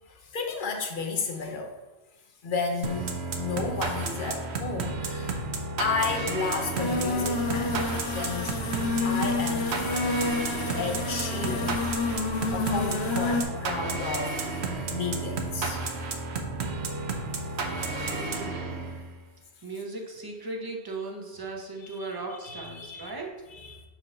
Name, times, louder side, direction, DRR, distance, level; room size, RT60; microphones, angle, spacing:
voice 1, 0.1-1.7 2.4-5.5 5.8-8.5 9.0-9.9 10.8-11.8 12.5-14.6 14.9-16.0 17.8-18.4 21.8-22.1 22.4-23.1 23.5-23.8, left 4 dB, 55° left, 3 dB, 0.9 m, -33 dB
sound 1, 2.8-19.1, right 3 dB, 80° right, 1.0 m, -32 dB
sound 2, 6.8-13.4, left 3 dB, 75° left, 1.0 m, -29 dB
voice 2, 17.9-19.0 19.6-23.3, right 2 dB, 25° right, 0 dB, 0.8 m, -37 dB
7.4 x 2.8 x 5.3 m, 1.1 s
omnidirectional pair, 1.1 m